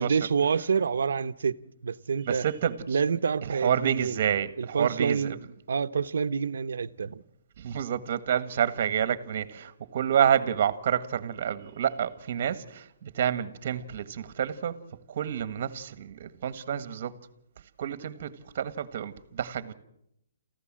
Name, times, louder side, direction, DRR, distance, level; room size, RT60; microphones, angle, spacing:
voice 1, 0.0-1.6 1.8-2.5 2.9-4.2 4.6-5.4 5.7-7.2, right 6 dB, 80° right, 1.0 m, -27 dB
voice 2, 2.2-2.8 3.6-5.3 7.6-14.8 15.1-17.1 17.8-19.7, right 9 dB, 45° right, 1.6 m, -28 dB
28.0 x 15.0 x 7.6 m
hypercardioid pair, 170°, 0 cm